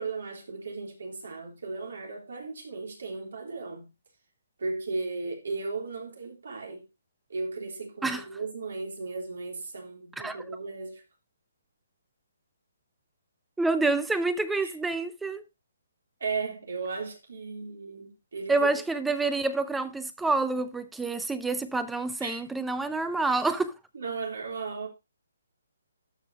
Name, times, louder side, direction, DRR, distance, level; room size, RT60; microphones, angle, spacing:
voice 1, 0.0-3.9 4.6-6.8 7.3-11.0 14.6-14.7 16.2-18.7 22.2-22.4 23.9-24.9, right 4 dB, 75° right, 3.4 m, -36 dB
voice 2, 13.6-15.4 18.5-23.7, right 3 dB, 5° right, 0.5 m, -28 dB
13.5 x 5.3 x 2.9 m
hypercardioid pair, 160°, 0 cm